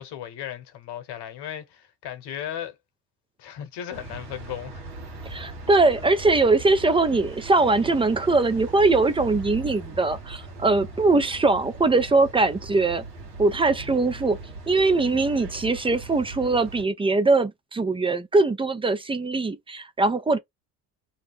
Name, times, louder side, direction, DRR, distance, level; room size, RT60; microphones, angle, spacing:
voice 1, 0.0-2.7 3.4-4.8, left 10 dB, 55° left, 1.1 m, -36 dB
sound 1, 3.9-16.8, right 3 dB, 85° right, 1.2 m, -39 dB
voice 2, 5.2-13.0 13.4-14.4 14.7-20.4, right 3 dB, 10° right, 0.4 m, -21 dB
2.8 x 2.0 x 3.5 m
hypercardioid pair, 65°, 47 cm